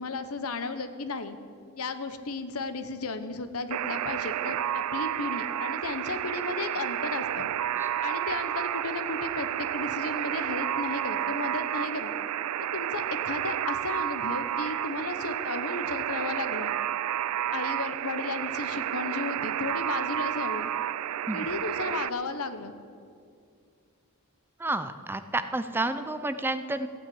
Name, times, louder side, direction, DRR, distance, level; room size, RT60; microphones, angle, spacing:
voice 1, 0.0-1.4 1.8-7.5 8.0-12.1 12.7-16.7 17.5-20.7 21.3-22.7, left 3 dB, 90° left, 10 dB, 1.0 m, -34 dB
Alarm, 3.7-22.1, right 11 dB, 90° right, 0.4 m, -31 dB
voice 2, 24.6-26.9, right 2 dB, 10° right, 10 dB, 0.5 m, -30 dB
15.0 x 8.9 x 8.7 m, 2.3 s
head